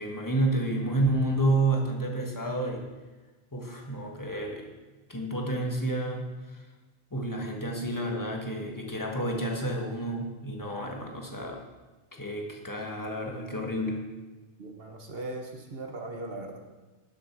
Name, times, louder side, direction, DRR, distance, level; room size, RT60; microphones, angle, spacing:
voice 1, 0.0-2.8 3.5-4.7 5.1-6.2 6.5-6.6 7.1-11.6 12.1-14.0, right 1 dB, 15° left, 0 dB, 1.5 m, -30 dB
voice 2, 14.6-16.6, right 2 dB, 55° right, 3 dB, 1.4 m, -38 dB
10.5 x 7.5 x 6.2 m, 1.2 s
omnidirectional pair, 1.2 m